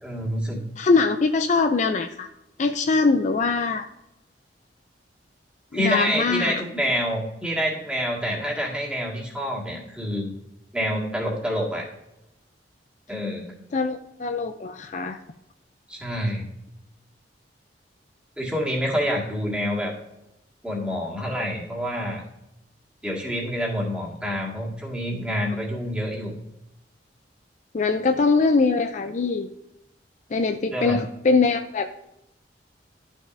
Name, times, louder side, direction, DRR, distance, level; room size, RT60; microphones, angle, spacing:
voice 1, 0.0-0.6 5.7-10.3 10.7-11.9 13.1-13.6 15.9-16.4 18.4-19.9 20.6-22.2 23.0-26.3 30.7-31.0, equal, 5° right, -3 dB, 1.9 m, -27 dB
voice 2, 0.8-2.3 2.6-3.9 5.7-6.6 13.7-15.2 27.7-29.5 30.3-31.9, left 4 dB, 40° left, 7 dB, 0.4 m, -22 dB
12.0 x 6.2 x 2.6 m, 0.87 s
head